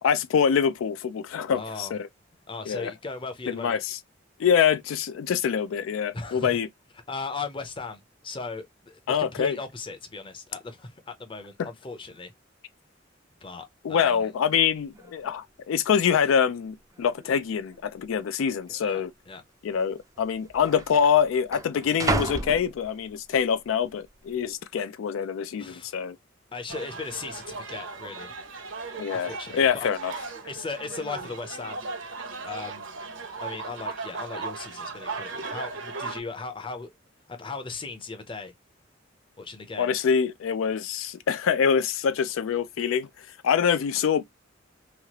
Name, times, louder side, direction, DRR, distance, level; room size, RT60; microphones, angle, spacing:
voice 1, 0.0-2.1 2.7-2.9 3.5-4.0 4.4-6.7 9.1-9.6 11.6-11.7 13.8-19.1 19.6-26.2 29.0-30.1 39.8-44.2, left 7 dB, 85° left, 0.4 m, -25 dB
voice 2, 1.5-1.9 2.5-3.8 6.1-6.6 7.1-12.3 13.4-14.3 18.8-19.4 25.6-25.9 26.5-28.3 29.1-29.9 30.5-31.8 32.4-32.9 33.4-36.9 37.3-38.5 39.4-39.9, left 4 dB, 25° left, 0.6 m, -37 dB
sound 1, 14.6-14.7 14.9-15.4 16.1-16.2 16.9-17.4 17.7-17.8 18.7-18.8 19.8-19.9 20.2-23.4 23.9-24.3, right 3 dB, 15° right, 0.4 m, -33 dB
sound 2, 26.7-36.2, right 4 dB, 70° right, 0.8 m, -37 dB
3.0 x 2.4 x 2.9 m
head